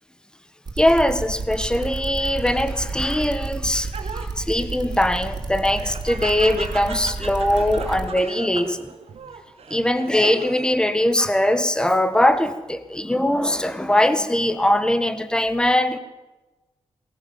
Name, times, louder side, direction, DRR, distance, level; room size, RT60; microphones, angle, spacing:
sound 1, 0.7-8.1, right 3 dB, 40° right, 3.5 m, -31 dB
voice 1, 0.8-8.9 9.7-16.0, left 1 dB, 10° left, 1.7 m, -21 dB
Laughter, 2.4-10.8 11.2-11.9, right 5 dB, 75° right, 2.9 m, -39 dB
23.5 x 19.0 x 7.5 m
wide cardioid pair, 130°, 11 cm